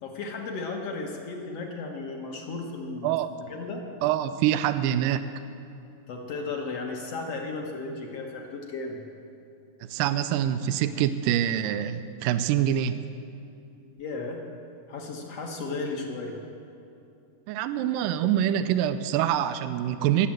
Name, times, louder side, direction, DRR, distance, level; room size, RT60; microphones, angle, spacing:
voice 1, 0.0-3.1 3.5-3.8 6.1-9.0 14.0-14.4 14.9-16.3, left 3 dB, 55° left, 2 dB, 2.2 m, -34 dB
voice 2, 4.0-5.3 9.9-13.0 17.5-20.3, right 11 dB, 85° right, 11 dB, 2.2 m, -25 dB
20.0 x 8.0 x 7.6 m, 2.7 s
omnidirectional pair, 3.9 m